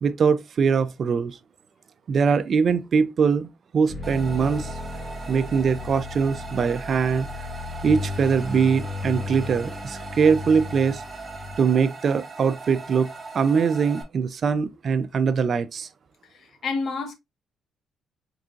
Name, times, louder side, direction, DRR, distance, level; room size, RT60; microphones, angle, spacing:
voice 1, 0.0-1.4 2.1-3.5 3.7-4.7 5.3-7.3 7.8-11.0 11.6-13.1 13.3-15.9, right 6 dB, 50° right, 0.4 m, -22 dB
sound 1, 3.9-11.8, left 3 dB, 45° left, 1.6 m, -35 dB
sound 2, 4.0-14.0, right 4 dB, 25° right, 1.0 m, -39 dB
voice 2, 16.3-17.1, left 4 dB, 65° left, 1.0 m, -29 dB
3.8 x 3.8 x 2.4 m
cardioid pair, 90°, 0 cm